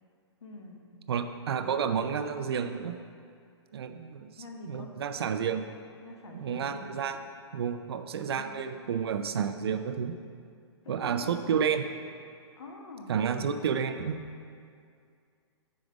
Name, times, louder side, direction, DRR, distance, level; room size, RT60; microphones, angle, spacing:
voice 1, 0.4-0.9 4.4-4.9 6.0-6.9 8.2-8.7 10.8-11.4 12.6-13.2, left 2 dB, 75° left, 1 dB, 1.0 m, -45 dB
voice 2, 1.1-3.0 3.7-4.3 4.7-5.6 6.3-7.2 7.5-10.2 10.9-11.9 13.1-14.2, right 7 dB, 60° right, 8 dB, 0.4 m, -30 dB
5.1 x 4.8 x 5.0 m, 2.3 s
hypercardioid pair, 175°, 15 cm